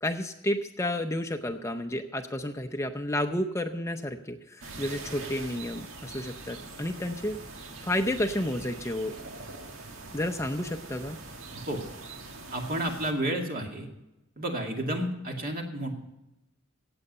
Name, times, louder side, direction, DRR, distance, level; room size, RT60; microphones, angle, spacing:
voice 1, 0.0-7.4 7.8-9.1 10.1-11.2, left 1 dB, 15° left, 6 dB, 0.6 m, -31 dB
sound 1, 4.6-13.1, right 3 dB, 90° right, 1.7 m, -43 dB
voice 2, 12.5-13.9 14.4-16.0, right 1 dB, 45° right, 2 dB, 2.3 m, -31 dB
17.0 x 7.9 x 5.4 m, 0.94 s
head